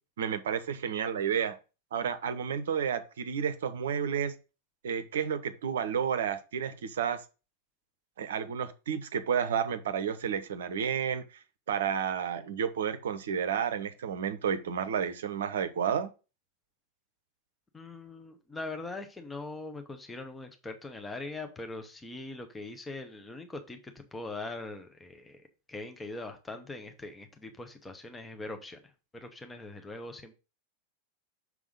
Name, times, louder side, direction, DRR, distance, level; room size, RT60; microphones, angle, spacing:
voice 1, 0.2-1.6 1.9-4.4 4.8-7.2 8.2-11.4 11.7-16.1, right 7 dB, 60° right, 0.7 m, -31 dB
voice 2, 17.7-28.8 29.1-30.3, left 2 dB, 10° left, 1.0 m, -41 dB
6.3 x 3.6 x 5.1 m
figure-of-eight pair, 90°, 0 cm